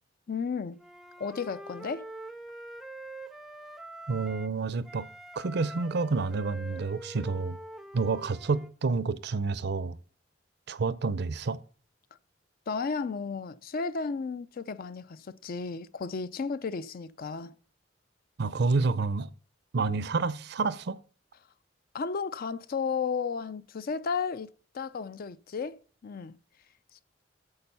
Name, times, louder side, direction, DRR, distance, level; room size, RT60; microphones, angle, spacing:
voice 1, 0.3-0.8 1.2-2.1 12.7-17.5 21.9-26.4, left 5 dB, 50° left, 0.4 m, -33 dB
Wind instrument woodwind instrument, 0.8-4.6 4.8-8.7, right 2 dB, ahead, 0.4 m, -45 dB
voice 2, 4.1-5.1 5.4-7.6 7.9-10.0 10.7-11.6 18.4-19.3 19.7-21.0, right 4 dB, 60° right, 0.5 m, -29 dB
8.7 x 6.8 x 5.5 m
head